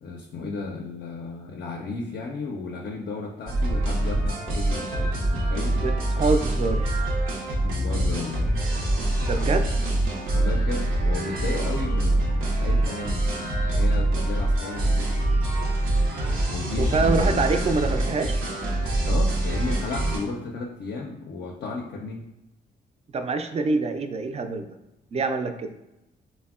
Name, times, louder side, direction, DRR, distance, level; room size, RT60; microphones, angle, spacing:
voice 1, 0.0-5.8 7.6-8.4 10.3-15.3 16.5-18.0 19.0-22.2, left 3 dB, 50° left, 1 dB, 0.4 m, -34 dB
sound 1, 3.5-20.2, right 1 dB, 85° right, 0.6 m, -24 dB
voice 2, 5.8-6.9 9.2-9.7 16.8-18.4 23.1-24.7 25.1-25.7, right 4 dB, 30° right, 7 dB, 0.3 m, -25 dB
3.4 x 2.1 x 2.3 m, 0.93 s
supercardioid pair, 45°, 20 cm